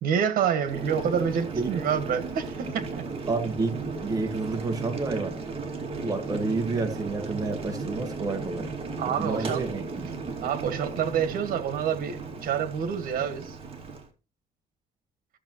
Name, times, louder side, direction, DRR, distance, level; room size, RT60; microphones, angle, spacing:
voice 1, 0.0-3.0 9.0-9.6 10.4-13.6, right 8 dB, 75° right, 1.5 m, -28 dB
Boiling, 0.6-14.1, right 4 dB, 40° right, 2.3 m, -35 dB
voice 2, 3.3-3.8 4.0-5.4 6.0-8.7 9.2-10.1, right 3 dB, 25° right, 1.4 m, -29 dB
14.5 x 6.9 x 3.0 m
cardioid pair, 130°, 15 cm